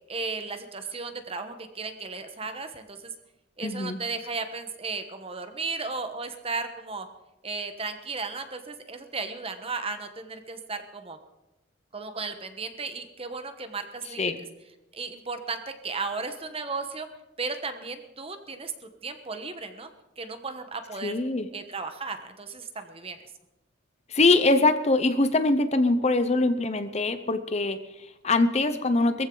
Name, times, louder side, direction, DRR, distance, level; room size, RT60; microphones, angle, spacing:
voice 1, 0.1-3.1 3.6-7.1 7.4-11.2 11.9-14.3 14.9-17.1 17.4-18.7 19.0-19.9 20.2-21.2 21.5-23.2, right 4 dB, 30° right, 8 dB, 1.2 m, -35 dB
voice 2, 3.6-4.0 14.2-14.4 21.0-21.5 24.1-29.3, left 2 dB, 35° left, 10 dB, 0.7 m, -23 dB
20.5 x 15.0 x 3.9 m, 0.98 s
head